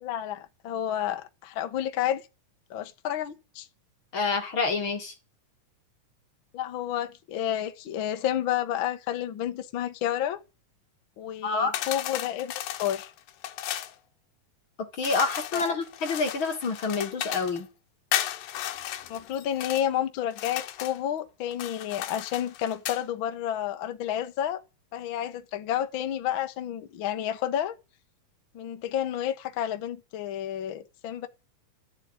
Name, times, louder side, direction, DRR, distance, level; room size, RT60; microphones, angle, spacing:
voice 1, 0.0-2.2 2.7-3.7 6.5-10.4 11.2-13.1 15.5-15.8 19.1-24.6 24.9-27.7 28.5-31.3, left 11 dB, 60° left, 1.3 m, -30 dB
voice 2, 4.1-5.1 11.4-11.7 15.0-17.7, left 4 dB, 45° left, 2.1 m, -27 dB
sound 1, 11.7-13.9 15.0-17.6 18.1-19.9 20.3-21.0 21.5-23.0, left 12 dB, 90° left, 2.6 m, -34 dB
13.5 x 7.2 x 9.7 m
omnidirectional pair, 3.8 m